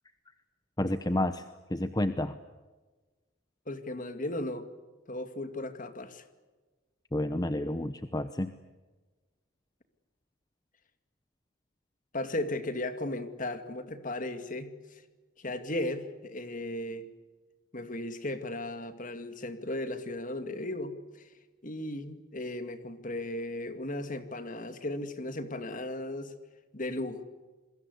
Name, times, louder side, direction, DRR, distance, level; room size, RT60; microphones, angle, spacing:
voice 1, 0.8-1.4 1.7-2.4 7.1-8.5, left 1 dB, 20° left, 11 dB, 0.9 m, -30 dB
voice 2, 3.7-4.7 5.1-6.2 12.1-14.7 15.4-17.1 17.7-21.3 21.6-26.3 26.7-27.2, left 1 dB, 40° left, 9 dB, 2.3 m, -36 dB
28.0 x 22.0 x 8.2 m, 1.3 s
head